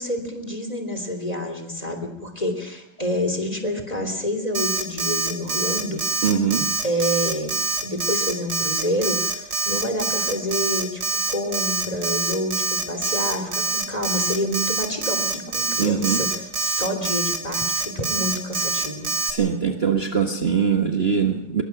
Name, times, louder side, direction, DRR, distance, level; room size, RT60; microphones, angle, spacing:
voice 1, 0.0-6.0 6.8-7.5 7.8-11.0 11.3-19.1, left 1 dB, 20° left, 5 dB, 3.2 m, -28 dB
Alarm, 4.5-19.3, right 4 dB, 60° right, 2.5 m, -25 dB
voice 2, 6.2-6.7 15.8-16.2 19.2-21.6, right 6 dB, 35° right, 4 dB, 1.5 m, -22 dB
22.5 x 21.5 x 5.9 m, 0.76 s
omnidirectional pair, 2.0 m